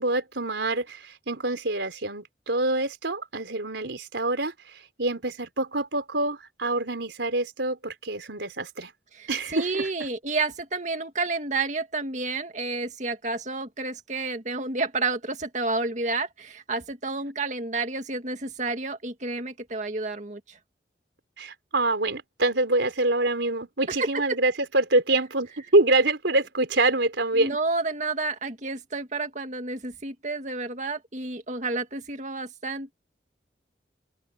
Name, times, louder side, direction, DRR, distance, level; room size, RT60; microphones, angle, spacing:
voice 1, 0.0-8.9 9.3-9.9 21.4-27.6, right 2 dB, 85° right, 3.9 m, -26 dB
voice 2, 9.1-20.6 24.0-24.2 27.3-32.9, right 3 dB, 40° right, 2.2 m, -30 dB
open air
head